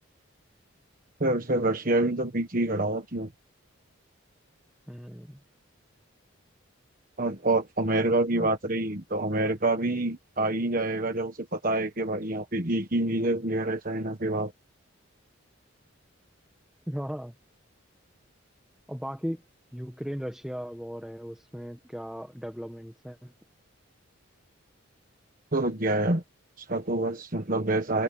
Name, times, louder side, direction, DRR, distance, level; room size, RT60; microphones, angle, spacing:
voice 1, 1.2-3.3 7.2-14.5 25.5-26.2 26.6-28.0, right 2 dB, 40° right, 1.4 m, -27 dB
voice 2, 4.9-5.4 8.3-8.5 16.9-17.3 18.9-19.4 19.7-23.3, equal, 5° right, 1.5 m, -37 dB
head